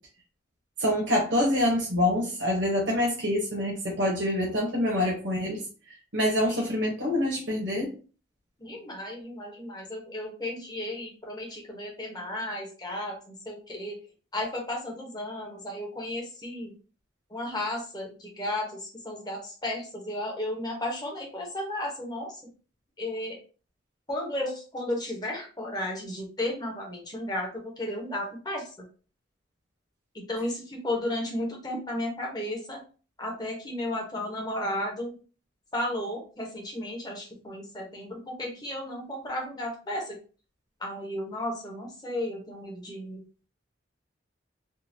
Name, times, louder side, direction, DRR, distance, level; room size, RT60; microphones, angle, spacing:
voice 1, 0.8-5.6 6.1-7.9, left 1 dB, 70° right, -2 dB, 1.0 m, -26 dB
voice 2, 8.6-14.0 14.3-16.7 17.3-22.3 23.0-23.4 24.1-28.7 30.1-32.8 33.2-35.2 35.7-40.2 40.8-43.2, left 1 dB, 20° left, -1 dB, 1.0 m, -34 dB
3.7 x 2.3 x 2.8 m, 0.36 s
head